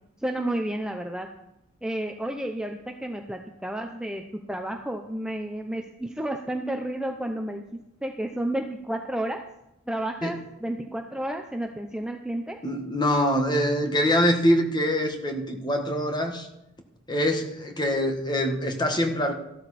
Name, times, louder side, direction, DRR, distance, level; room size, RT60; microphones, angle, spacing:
voice 1, 0.2-1.3 1.8-4.2 4.5-7.6 8.0-9.4 9.9-12.6, right 1 dB, 5° right, 3 dB, 0.7 m, -31 dB
voice 2, 12.6-16.5 17.1-19.3, equal, 20° left, 5 dB, 1.5 m, -24 dB
14.0 x 12.5 x 4.2 m, 0.85 s
head